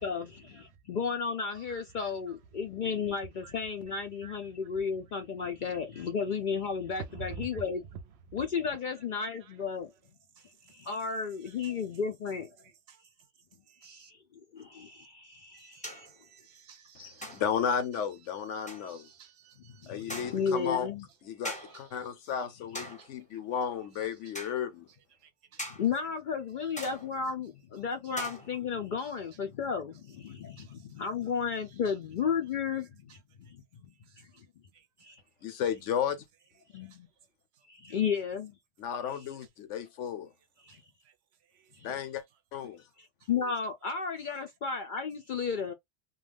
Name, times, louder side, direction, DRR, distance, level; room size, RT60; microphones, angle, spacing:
voice 1, 0.0-7.8 8.3-9.9 10.7-12.5 13.8-16.1 19.8-21.1 22.8-22.9 25.7-34.3 35.0-35.2 36.7-37.1 37.7-38.6 39.1-39.2 40.6-40.8 41.8-42.0 43.0-45.7, left 6 dB, 60° left, 0.5 m, -34 dB
voice 2, 1.5-2.1 3.4-3.5 4.2-4.3 5.4-5.5 6.9-7.6 8.7-8.8 9.4-9.5 10.4-10.5 11.5-12.0 12.6-13.0 13.7-14.1 15.5-17.4 18.6-20.2 20.5-20.6 21.5-22.0 23.0-23.1 24.0-24.3 25.2-25.6 26.6-26.7 29.0-29.1 30.6-30.9 33.1-33.2 34.1-34.2 34.7-35.1 36.7-37.0 37.9-38.0 40.7-40.8 41.0-41.1 41.5-42.0 43.2-43.3, right 6 dB, 70° right, 0.8 m, -50 dB
sound 1, 14.6-14.7 15.8-16.2 17.2-17.7 18.7-19.0 20.1-20.6 21.4-21.9 22.7-23.2 24.3-24.6 25.6-25.9 26.8-27.3 28.2-28.8, equal, 10° left, 0.6 m, -42 dB
voice 3, 17.0-19.1 19.9-20.9 21.2-24.9 35.4-36.2 38.8-40.3 41.8-42.2 42.5-42.8, left 8 dB, 80° left, 1.0 m, -33 dB
2.4 x 2.2 x 3.3 m
omnidirectional pair, 1.2 m